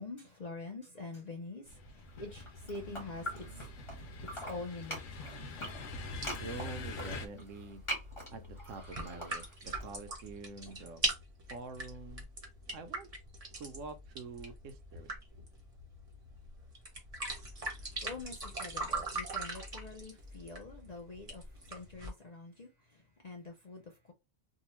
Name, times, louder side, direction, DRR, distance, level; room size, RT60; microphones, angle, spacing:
voice 1, 0.0-3.6 4.0-5.6 17.6-24.1, left 3 dB, 45° left, 0.5 m, -46 dB
sound 1, 1.7-7.3, left 3 dB, 75° left, 1.0 m, -45 dB
sound 2, 2.3-4.0 4.2-9.8, equal, 25° left, 1.2 m, -43 dB
voice 2, 2.6-3.7 6.4-7.8 8.3-11.0 11.5-12.3 12.7-13.1 13.6-15.1, right 4 dB, 75° right, 0.9 m, -46 dB
sound 3, 6.1-22.1, right 2 dB, 35° right, 0.8 m, -42 dB
2.7 x 2.3 x 3.0 m
omnidirectional pair, 1.3 m